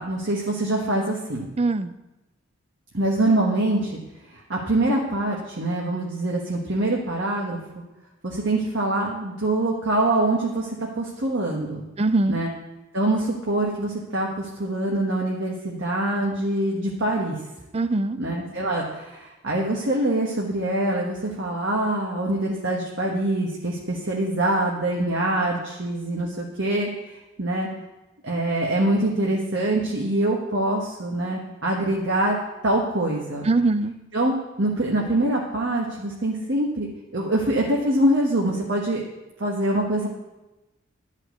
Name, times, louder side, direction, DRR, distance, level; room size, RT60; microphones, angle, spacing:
voice 1, 0.0-1.5 2.9-4.0 4.3-7.6 8.2-10.7 10.9-11.8 12.3-12.5 12.9-17.4 18.2-27.7 28.2-32.4 32.6-33.5 34.1-39.0 39.4-40.1, right 1 dB, 60° right, -2 dB, 1.4 m, -24 dB
voice 2, 1.6-1.9 12.0-12.4 17.7-18.2 33.5-33.9, right 2 dB, 30° right, 13 dB, 0.4 m, -21 dB
11.5 x 5.7 x 8.0 m, 1.0 s
head